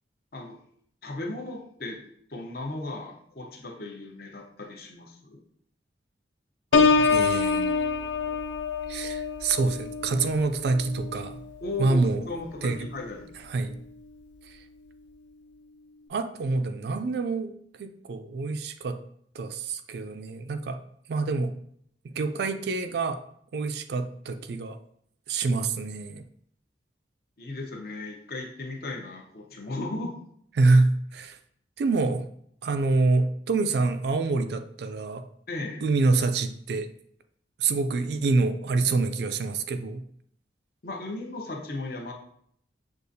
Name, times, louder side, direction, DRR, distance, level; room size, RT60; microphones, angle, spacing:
voice 1, 1.0-2.0 2.3-5.4 11.6-12.0 12.3-13.3 27.4-30.1 30.6-30.8 35.5-35.8 40.8-42.1, left 2 dB, 55° left, 1 dB, 0.7 m, -36 dB
Piano, 6.7-12.3 12.8-13.2, left 4 dB, 80° left, 0.4 m, -26 dB
voice 2, 7.0-8.4 8.9-11.4 11.8-12.2 12.6-12.9 13.5-13.7 14.5-14.6 16.1-19.0 19.3-20.8 21.1-21.5 22.0-23.2 23.5-24.8 25.3-26.2 30.6-31.4 31.8-32.3 32.6-35.2 35.8-36.9 37.6-40.0, right 3 dB, 60° right, 9 dB, 0.3 m, -26 dB
6.4 x 2.4 x 2.6 m, 0.67 s
head